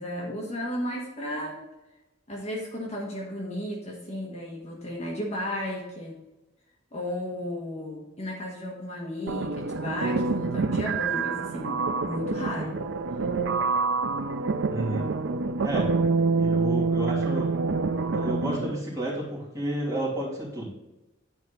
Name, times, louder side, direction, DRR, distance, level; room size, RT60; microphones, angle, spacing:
voice 1, 0.0-1.6 2.3-6.2 6.9-12.8, left 1 dB, 35° left, -2 dB, 1.3 m, -34 dB
sound 1, 9.3-18.8, right 4 dB, 65° right, 0.5 m, -27 dB
voice 2, 14.7-15.1 15.6-15.9 16.3-17.5 18.1-20.7, right 1 dB, 15° right, -8 dB, 3.0 m, -31 dB
10.0 x 4.5 x 4.0 m, 1.0 s
head